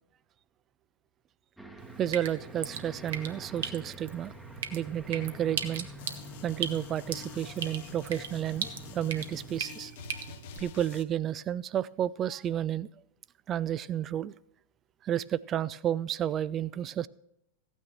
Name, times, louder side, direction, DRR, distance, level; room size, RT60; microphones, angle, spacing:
Aircraft, 1.6-9.7, left 1 dB, 5° right, 1.1 m, -48 dB
Drip, 1.8-10.6, right 7 dB, 65° right, 1.1 m, -39 dB
voice 1, 2.0-4.3 4.7-5.9 6.4-8.7 8.9-9.9 10.6-12.9 13.5-14.3 15.0-17.1, right 10 dB, 30° right, 19 dB, 0.4 m, -31 dB
sound 1, 6.0-11.0, left 9 dB, 55° left, 0.9 m, -48 dB
15.0 x 9.1 x 4.3 m, 0.80 s
figure-of-eight pair, 90°, 0 cm